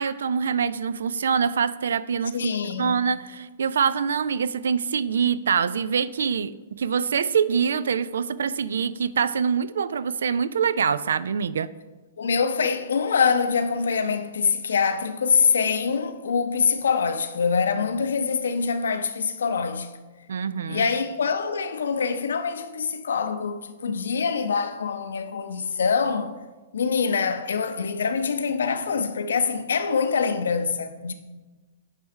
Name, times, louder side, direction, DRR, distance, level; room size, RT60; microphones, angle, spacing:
voice 1, 0.0-2.5 2.8-11.7 20.3-20.9, right 6 dB, 70° right, 0.3 m, -25 dB
voice 2, 2.3-3.0 12.2-20.0 20.7-26.3 26.7-31.1, left 5 dB, 70° left, 0.6 m, -24 dB
9.5 x 3.3 x 4.8 m
figure-of-eight pair, 110°, 0 cm